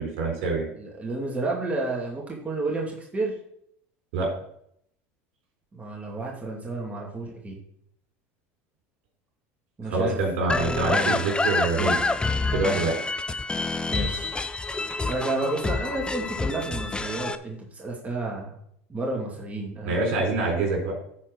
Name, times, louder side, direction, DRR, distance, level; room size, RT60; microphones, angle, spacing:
voice 1, 0.0-0.7 4.1-4.3 9.9-12.0 12.5-13.0 19.8-20.9, right 3 dB, 70° right, 1 dB, 4.1 m, -25 dB
voice 2, 0.8-3.3 5.7-7.6 9.8-10.2 13.9-14.3 15.0-18.5 18.9-20.0, right 2 dB, 20° right, -1 dB, 2.4 m, -31 dB
sound 1, 10.5-17.4, left 3 dB, 15° left, 0.6 m, -27 dB
9.7 x 4.7 x 6.3 m, 0.69 s
hypercardioid pair, 95°, 7 cm